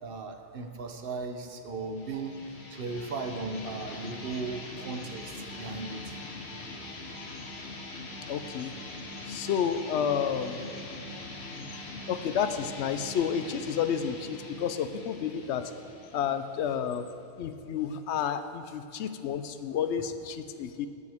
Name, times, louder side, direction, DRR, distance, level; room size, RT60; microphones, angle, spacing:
voice 1, 0.0-6.2, right 3 dB, 60° right, 6 dB, 0.9 m, -37 dB
sound 1, 1.8-17.2, left 2 dB, 75° left, 1.4 m, -42 dB
voice 2, 8.3-8.7 9.3-10.6 12.1-15.7 16.1-17.1 17.4-20.9, left 8 dB, 90° left, 10 dB, 0.9 m, -30 dB
14.0 x 8.5 x 3.5 m, 2.7 s
omnidirectional pair, 1.1 m